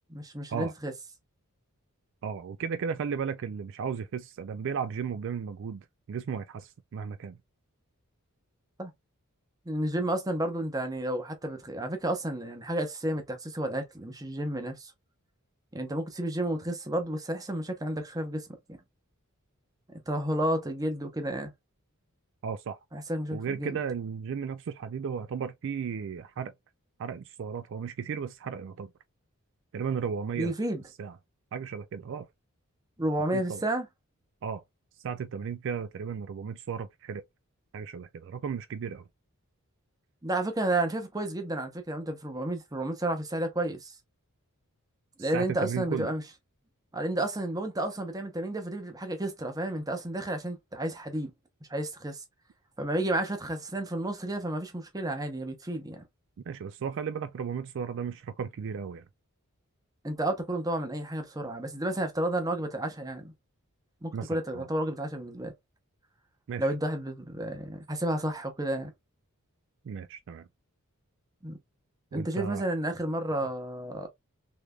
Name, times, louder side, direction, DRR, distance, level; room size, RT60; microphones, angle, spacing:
voice 1, 0.1-0.9 8.8-8.9 9.7-14.9 15.7-18.5 19.9-21.5 22.9-23.8 30.4-30.8 33.0-33.9 40.2-43.9 45.2-46.2 46.9-51.3 51.7-52.2 52.8-56.0 60.0-63.3 64.0-65.5 66.6-68.9 71.4-71.6 72.1-74.1, right 1 dB, 15° right, 0.7 m, -31 dB
voice 2, 2.2-7.4 22.4-22.8 23.3-26.5 27.0-28.9 29.7-30.5 31.0-31.1 31.5-32.3 33.3-33.6 34.4-34.6 35.0-37.2 37.7-39.0 45.2-46.1 56.5-59.0 64.1-64.7 66.5-66.7 69.8-70.5 72.1-72.6, right 6 dB, 55° right, 0.3 m, -35 dB
3.5 x 3.2 x 2.3 m
head